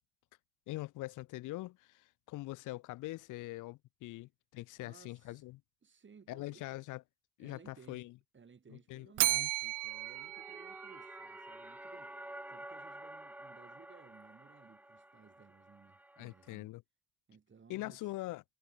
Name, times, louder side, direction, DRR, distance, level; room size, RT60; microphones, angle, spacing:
voice 1, 0.7-5.6 6.3-7.0 7.4-8.1 8.9-9.5 16.2-16.8 17.7-18.4, left 18 dB, 85° left, 0.7 m, -43 dB
voice 2, 4.8-5.5 5.8-6.9 7.4-8.1 8.3-12.1 12.5-16.7 17.3-18.1, right 6 dB, 40° right, 6.5 m, -60 dB
Bell, 9.2-11.4, right 18 dB, 80° right, 0.6 m, -34 dB
sound 1, 9.6-16.6, right 1 dB, 5° right, 1.0 m, -51 dB
cardioid pair, 90°, 30 cm